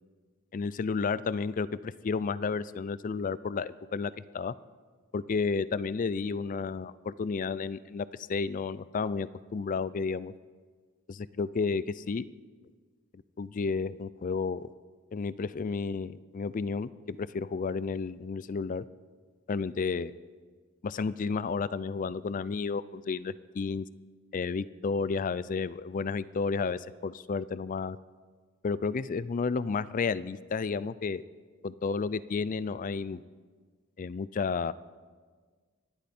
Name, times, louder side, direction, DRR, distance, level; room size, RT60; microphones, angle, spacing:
voice 1, 0.5-4.5 5.1-10.3 11.1-12.3 13.1-14.7 15.1-18.9 19.5-20.1 20.8-23.9 24.3-28.0 28.6-31.2 31.6-33.2 34.0-34.7, left 5 dB, 35° left, 18 dB, 0.4 m, -32 dB
25.5 x 11.5 x 4.3 m, 1.5 s
head